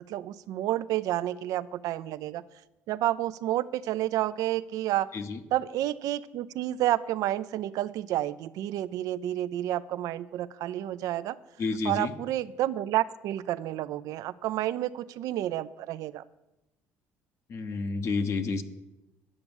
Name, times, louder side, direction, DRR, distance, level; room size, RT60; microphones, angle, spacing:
voice 1, 0.1-2.4 2.9-5.1 5.5-11.4 11.8-16.2, right 13 dB, 70° right, 15 dB, 0.4 m, -30 dB
voice 2, 11.6-12.1 17.5-18.6, left 4 dB, 50° left, 8 dB, 1.0 m, -30 dB
9.6 x 6.8 x 7.1 m, 0.98 s
supercardioid pair, 90°, 6 cm